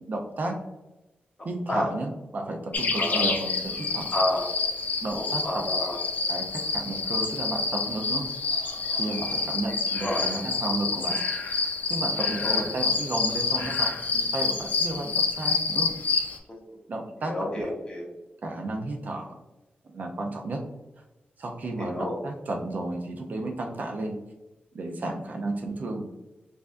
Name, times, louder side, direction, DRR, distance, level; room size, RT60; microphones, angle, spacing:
voice 1, 0.1-0.6 1.4-4.1 5.0-5.6 6.3-8.3 9.0-11.2 11.9-15.9 16.9-17.7 18.4-19.3 19.9-20.6 21.4-24.2 24.7-26.1, right 2 dB, 50° right, 2 dB, 0.5 m, -33 dB
sound 1, 2.7-16.4, left 4 dB, 50° left, 0.5 m, -28 dB
voice 2, 4.1-4.5 5.1-6.0 7.2-7.3 10.0-10.3 12.4-12.6 16.5-16.6 17.2-18.0 21.8-22.2, left 1 dB, 25° left, -2 dB, 0.9 m, -30 dB
4.7 x 2.5 x 2.4 m, 1.0 s
wide cardioid pair, 160°, 4 cm